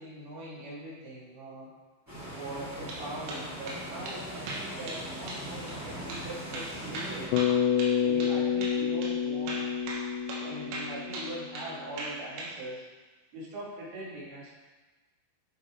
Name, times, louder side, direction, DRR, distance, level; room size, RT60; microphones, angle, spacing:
voice 1, 0.0-1.7 2.3-7.5 8.0-9.7 10.4-12.9 13.3-14.5, right 1 dB, 60° right, -7 dB, 3.9 m, -41 dB
sound 1, 2.1-7.3, equal, 10° right, 0.8 m, -40 dB
sound 2, 2.9-3.0 3.3-3.8 4.1-4.2 4.5-5.0 5.3-5.4 5.7-5.8 6.1-6.2 6.5-8.4 8.6-8.8 9.0-9.1 9.5-10.0 10.3-10.5 10.7-11.7 12.0-12.5, right 2 dB, 80° right, 3.9 m, -38 dB
Bass guitar, 7.3-11.7, left 8 dB, 85° left, 2.7 m, -28 dB
10.5 x 5.8 x 3.8 m, 1.3 s
omnidirectional pair, 5.5 m